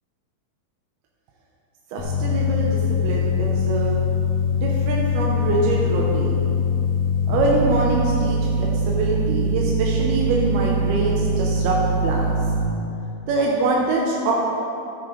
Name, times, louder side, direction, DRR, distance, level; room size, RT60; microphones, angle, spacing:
voice 1, 1.9-4.0 4.5-6.4 7.3-12.3 13.3-14.3, right 3 dB, 90° right, -3 dB, 2.9 m, -24 dB
sound 1, 2.0-12.7, left 2 dB, 70° left, 2.9 m, -22 dB
13.0 x 9.7 x 3.3 m, 2.8 s
omnidirectional pair, 4.5 m